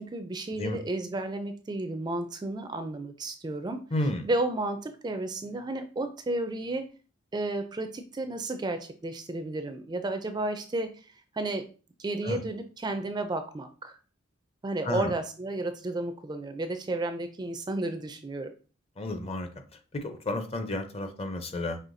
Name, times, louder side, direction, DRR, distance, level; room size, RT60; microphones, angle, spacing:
voice 1, 0.0-3.8 4.2-6.9 7.3-10.9 11.3-11.7 12.0-14.0 14.6-18.5, right 2 dB, 20° right, 8 dB, 0.4 m, -32 dB
voice 2, 3.9-4.2 12.2-12.4 14.8-15.1 19.0-19.5 19.9-21.8, left 1 dB, 30° left, 7 dB, 0.5 m, -31 dB
5.6 x 3.0 x 2.6 m, 0.37 s
head